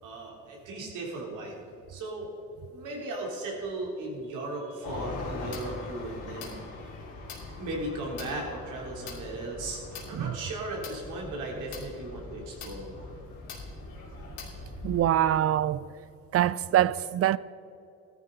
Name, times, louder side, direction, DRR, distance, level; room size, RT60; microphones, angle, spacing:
voice 1, 0.0-1.6 1.9-2.3 2.7-6.6 6.8-6.9 7.6-13.1, right 2 dB, 85° right, 3.3 m, -37 dB
sound 1, 4.8-15.0, left 3 dB, 85° left, 3.2 m, -41 dB
voice 2, 14.8-15.8 16.3-17.4, right 11 dB, 50° right, 0.4 m, -24 dB
15.0 x 12.5 x 3.9 m
cardioid pair, 90°, 30 cm